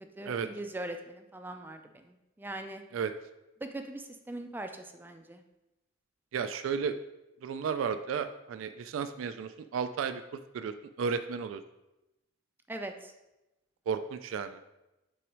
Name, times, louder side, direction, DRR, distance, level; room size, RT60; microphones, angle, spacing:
voice 1, 0.2-2.8 3.6-5.4 12.7-13.1, right 1 dB, 10° right, 6 dB, 0.3 m, -41 dB
voice 2, 6.3-7.0 7.4-10.2 10.5-11.6 13.9-14.6, right 6 dB, 90° right, 10 dB, 0.3 m, -33 dB
6.1 x 4.0 x 4.6 m, 0.96 s
head